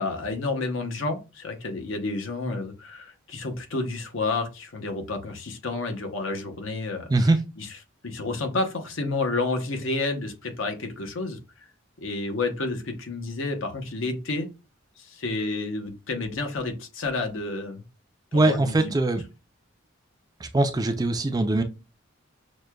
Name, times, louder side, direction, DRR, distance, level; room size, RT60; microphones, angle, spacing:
voice 1, 0.0-7.7 8.0-11.4 12.0-14.5 15.0-17.8 18.3-18.9, left 3 dB, 70° left, 0.8 m, -30 dB
voice 2, 18.3-19.2 20.4-21.6, right 2 dB, 20° right, 0.4 m, -22 dB
6.2 x 2.2 x 2.2 m
head